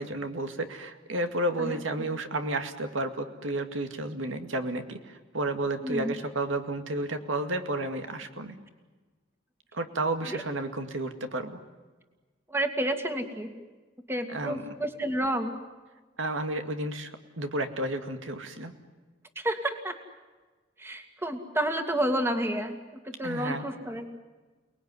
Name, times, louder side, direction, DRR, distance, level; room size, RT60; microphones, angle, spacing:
voice 1, 0.0-8.6 9.7-11.6 14.3-14.6 16.2-17.1 17.4-18.7 23.2-23.7, right 1 dB, 85° right, 7 dB, 2.2 m, -31 dB
voice 2, 1.6-2.1 5.8-6.1 10.2-10.4 12.5-13.5 14.1-15.6 19.4-20.0 20.8-24.1, right 1 dB, 15° right, 6 dB, 2.1 m, -30 dB
29.5 x 20.0 x 9.7 m, 1.3 s
head